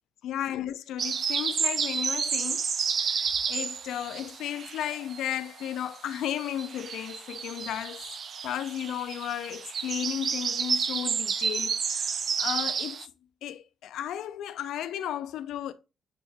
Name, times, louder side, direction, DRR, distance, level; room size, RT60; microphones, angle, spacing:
voice 1, 0.2-2.6 3.0-8.0 8.4-13.0 13.4-15.7, left 11 dB, 80° left, 0.4 m, -34 dB
sound 1, 1.0-5.3 5.6-13.1, right 6 dB, 50° right, 0.4 m, -31 dB
8.0 x 2.7 x 2.2 m
cardioid pair, 90°, 0 cm